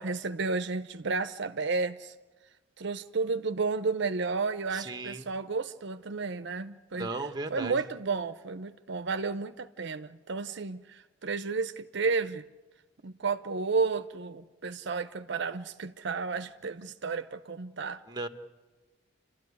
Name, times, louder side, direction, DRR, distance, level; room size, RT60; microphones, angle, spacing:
voice 1, 0.0-2.1 2.8-7.1 7.5-12.4 13.0-18.0, right 4 dB, 65° right, 10 dB, 0.7 m, -32 dB
voice 2, 4.7-5.3 6.9-7.8 18.1-18.3, right 2 dB, 20° right, 7 dB, 1.2 m, -36 dB
30.0 x 13.5 x 9.6 m, 1.2 s
head